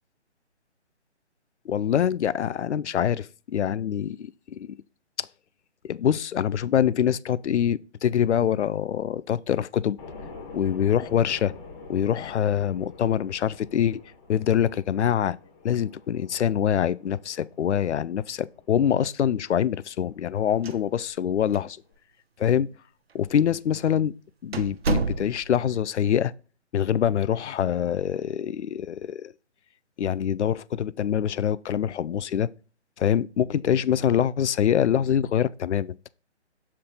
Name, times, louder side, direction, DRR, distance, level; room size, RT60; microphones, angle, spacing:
voice 1, 1.7-4.8 5.2-5.3 5.8-10.0 10.5-11.5 11.9-14.0 14.3-15.4 15.6-21.8 22.4-22.7 23.1-24.1 24.4-26.3 26.7-29.3 30.0-32.5 33.0-36.1, left 9 dB, 75° left, 0.5 m, -25 dB
sound 1, 10.0-21.9, left 3 dB, 20° left, 1.5 m, -47 dB
sound 2, 20.5-21.3 21.5-21.6 22.4-22.5 23.3-23.5 23.9-24.0 24.5-25.7, right 4 dB, 60° right, 0.8 m, -29 dB
7.3 x 4.5 x 3.8 m
figure-of-eight pair, 150°, 35 cm